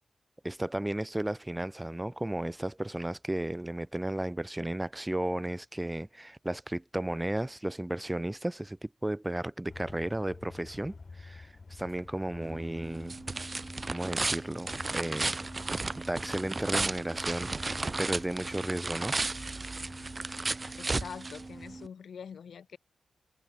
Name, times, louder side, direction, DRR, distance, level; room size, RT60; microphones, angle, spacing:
voice 1, 0.4-13.2 13.8-15.4 15.9-19.1, right 1 dB, 15° right, 0.6 m, -34 dB
sound 1, 9.7-20.5, left 4 dB, 45° left, 4.3 m, -50 dB
sound 2, 12.4-21.9, right 3 dB, 35° right, 1.1 m, -34 dB
voice 2, 20.6-22.8, left 7 dB, 75° left, 1.3 m, -45 dB
cardioid pair, 55°, 0 cm